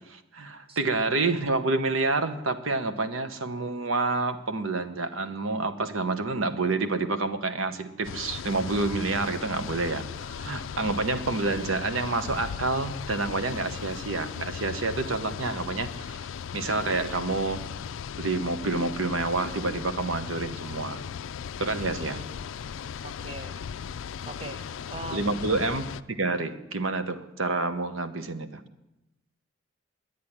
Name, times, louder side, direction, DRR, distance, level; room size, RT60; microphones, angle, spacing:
voice 1, 0.1-17.6 18.2-21.0 21.6-22.2 25.1-28.6, right 3 dB, 85° right, 10 dB, 1.1 m, -28 dB
sound 1, 8.0-26.0, left 7 dB, 75° left, 0.4 m, -37 dB
voice 2, 22.0-22.4 23.0-23.6 24.3-25.4, right 2 dB, 25° right, 9 dB, 0.9 m, -41 dB
10.5 x 9.3 x 9.9 m, 0.94 s
head